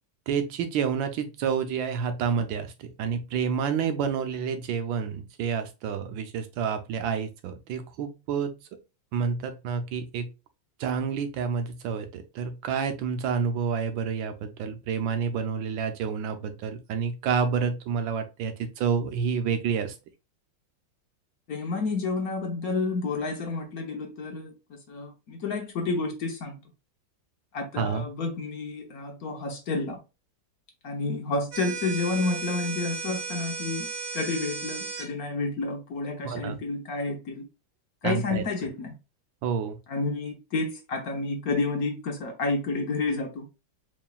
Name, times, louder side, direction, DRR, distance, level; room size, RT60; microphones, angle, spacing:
voice 1, 0.3-8.5 9.1-10.3 10.8-19.9 27.8-28.0 36.2-36.6 38.0-38.4 39.4-39.8, right 6 dB, 85° right, 1.5 m, -29 dB
voice 2, 21.5-26.6 27.5-30.0 30.8-33.9 34.1-37.4 38.0-38.9 39.9-43.5, left 3 dB, 60° left, 1.2 m, -30 dB
sound 1, 31.5-35.1, right 4 dB, 60° right, 1.2 m, -35 dB
4.7 x 3.2 x 2.3 m
omnidirectional pair, 2.0 m